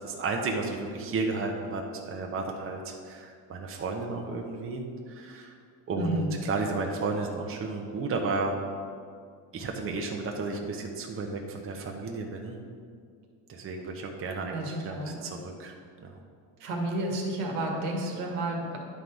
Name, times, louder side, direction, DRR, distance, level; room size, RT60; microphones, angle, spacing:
voice 1, 0.0-5.5 5.9-8.6 9.5-12.6 13.5-14.6 14.8-16.2, right 3 dB, 30° right, 2 dB, 0.8 m, -33 dB
voice 2, 6.0-6.3 14.5-15.3 16.6-18.8, right 1 dB, 80° right, 1 dB, 1.6 m, -31 dB
10.0 x 3.9 x 4.7 m, 2.2 s
supercardioid pair, 100°, 43 cm